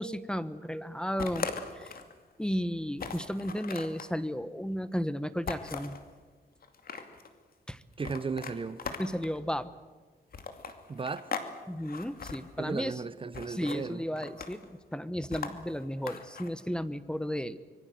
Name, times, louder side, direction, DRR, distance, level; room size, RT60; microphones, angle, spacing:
voice 1, 0.0-1.5 1.7-1.9 2.4-6.0 7.7-7.8 9.0-9.7 11.7-13.0 13.5-17.6, equal, 5° left, 1.1 m, -34 dB
sound 1, 1.2-2.1 2.5-2.6 3.0-4.1 5.5-6.0 6.6-7.3 8.0-9.4 10.3-11.5 11.8-12.4 13.3-13.8 14.2-14.7 15.3-16.5, left 5 dB, 60° left, 2.5 m, -39 dB
voice 2, 8.0-8.8 10.9-11.3 12.6-14.0, right 4 dB, 30° right, 0.9 m, -35 dB
25.5 x 23.0 x 7.8 m
cardioid pair, 105°, 17 cm